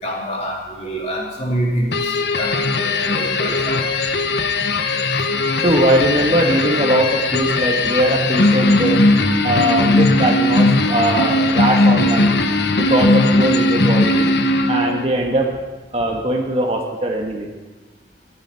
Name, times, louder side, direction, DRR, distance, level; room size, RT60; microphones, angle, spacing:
voice 1, 0.0-3.8, right 1 dB, 40° left, -3 dB, 3.2 m, -26 dB
sound 1, 1.9-15.1, left 2 dB, 75° left, 0.9 m, -18 dB
voice 2, 5.6-9.1 9.4-12.4 12.8-14.3 14.7-15.5 15.9-17.5, right 1 dB, 35° right, 1 dB, 1.5 m, -20 dB
14.5 x 10.0 x 5.7 m, 1.2 s
head